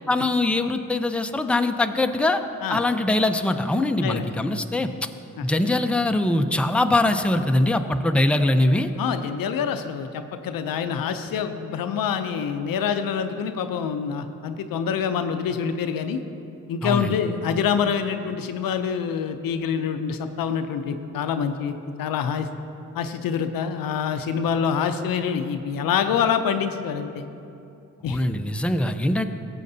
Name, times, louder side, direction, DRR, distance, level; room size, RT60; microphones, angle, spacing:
voice 1, 0.1-2.4 2.7-5.1 5.4-8.9 16.8-17.1 28.1-29.3, left 2 dB, 5° left, 7 dB, 0.5 m, -22 dB
voice 2, 9.0-16.2 16.7-22.5 22.9-27.2 28.0-28.2, left 7 dB, 85° left, 9 dB, 0.5 m, -26 dB
15.0 x 7.7 x 2.7 m, 2.8 s
supercardioid pair, 45°, 34 cm